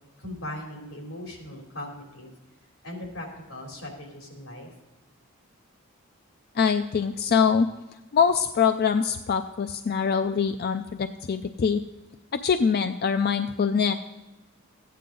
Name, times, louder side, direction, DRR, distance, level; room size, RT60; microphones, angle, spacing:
voice 1, 0.2-2.3 2.8-4.7, left 1 dB, 85° left, 1 dB, 3.2 m, -39 dB
voice 2, 6.6-7.7 8.1-11.8 12.3-13.9, left 6 dB, 50° left, 9 dB, 0.4 m, -23 dB
14.0 x 9.4 x 3.8 m, 1.1 s
head